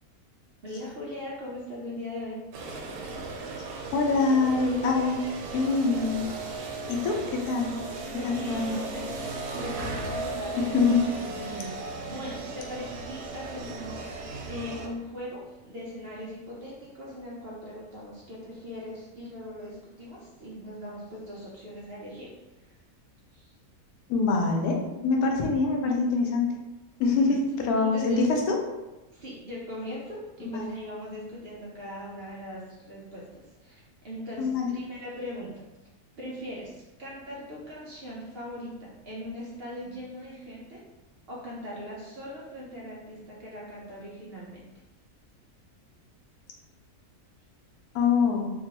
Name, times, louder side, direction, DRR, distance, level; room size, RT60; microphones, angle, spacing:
voice 1, 0.6-2.4 8.1-22.3 22.6-22.7 23.3-23.5 27.1-27.3 27.8-28.2 29.1-35.6 36.2-40.8 41.3-44.6, equal, 55° right, -5 dB, 0.7 m, -40 dB
sound 1, 2.5-14.9, right 2 dB, 85° right, 1.1 m, -36 dB
voice 2, 3.9-5.2 5.5-6.2 6.9-7.7 8.2-8.9 10.6-11.0 24.1-24.8 25.0-26.5 27.0-28.6 30.5-30.7 34.4-34.7 47.9-48.5, left 4 dB, 80° left, 1 dB, 1.1 m, -24 dB
3.6 x 2.3 x 2.8 m, 1.0 s
omnidirectional pair, 1.6 m